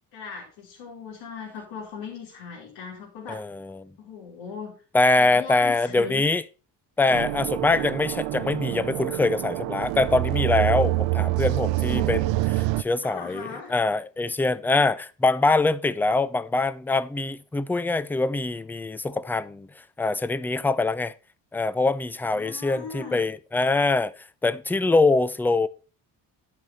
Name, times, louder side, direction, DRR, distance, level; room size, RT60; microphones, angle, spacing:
voice 1, 0.1-3.4 4.0-4.8 5.2-6.2 7.0-7.2 11.3-11.4 11.8-12.2 13.0-13.8 22.3-23.2, left 6 dB, 85° left, 3.3 m, -39 dB
voice 2, 3.3-3.9 4.9-6.4 7.0-19.7 20.0-21.1 21.5-24.1 24.4-25.7, left 3 dB, 5° left, 0.3 m, -24 dB
sound 1, 7.1-12.8, right 18 dB, 90° right, 0.6 m, -26 dB
11.0 x 5.1 x 4.1 m
cardioid pair, 100°, 43 cm